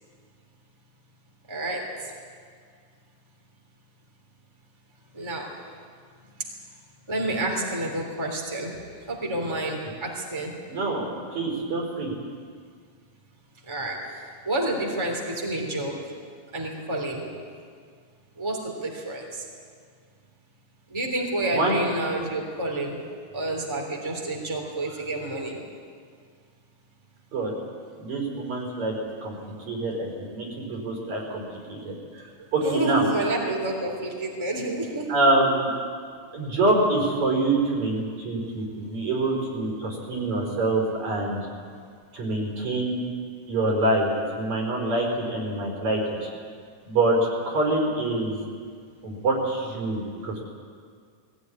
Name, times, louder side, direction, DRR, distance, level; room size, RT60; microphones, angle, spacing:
voice 1, 1.5-1.9 5.1-5.5 7.1-10.6 13.7-16.1 16.5-17.3 18.4-19.4 20.9-23.0 23.3-25.6 32.6-35.1, right 1 dB, 10° right, 0 dB, 3.0 m, -29 dB
voice 2, 10.7-12.1 21.5-21.8 27.3-27.5 28.0-29.0 29.2-33.1 35.1-35.7 36.3-41.5 42.1-43.0 43.5-46.3 46.9-47.2 47.5-48.4 49.0-50.4, right 2 dB, 65° right, -1 dB, 5.8 m, -26 dB
20.5 x 17.0 x 9.9 m, 2.1 s
omnidirectional pair, 3.6 m